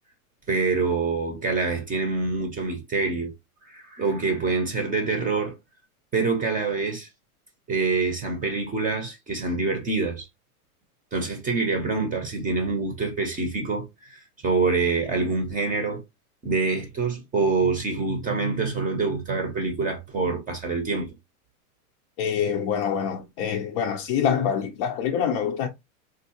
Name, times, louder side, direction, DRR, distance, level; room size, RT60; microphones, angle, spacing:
voice 1, 0.5-3.3 3.6-5.5 6.1-7.1 7.7-10.3 11.1-16.0 16.4-21.1, right 4 dB, 20° right, 0.7 m, -26 dB
voice 2, 22.2-25.7, left 8 dB, 40° left, 0.5 m, -25 dB
3.6 x 2.5 x 2.8 m
hypercardioid pair, 125°, 45 cm